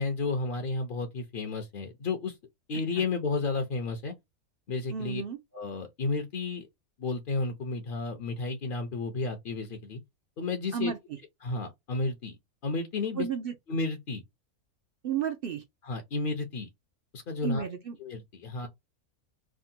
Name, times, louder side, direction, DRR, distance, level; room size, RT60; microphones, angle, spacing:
voice 1, 0.0-2.4 2.7-4.1 4.7-5.2 5.5-6.7 7.0-10.0 10.4-10.9 11.4-12.4 12.6-13.3 13.7-14.2 15.8-16.7 17.1-17.6 18.0-18.7, left 3 dB, 55° left, 0.6 m, -32 dB
voice 2, 4.9-5.4 10.7-11.2 13.2-13.5 15.0-15.6 17.4-18.0, right 7 dB, 70° right, 0.5 m, -32 dB
3.5 x 2.1 x 2.6 m
omnidirectional pair, 1.6 m